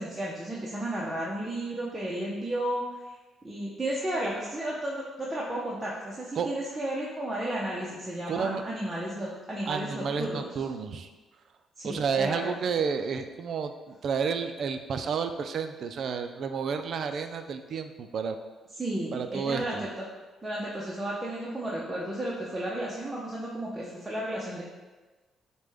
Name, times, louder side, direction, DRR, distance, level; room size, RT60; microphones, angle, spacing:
voice 1, 0.0-3.1 3.4-10.5 11.8-12.4 18.7-19.9 20.4-24.6, right 1 dB, 15° right, -6 dB, 0.6 m, -33 dB
voice 2, 8.3-8.6 9.7-11.1 11.8-18.4 19.1-19.8, right 6 dB, 60° right, 8 dB, 0.3 m, -31 dB
4.9 x 2.2 x 3.4 m, 1.3 s
cardioid pair, 90°, 0 cm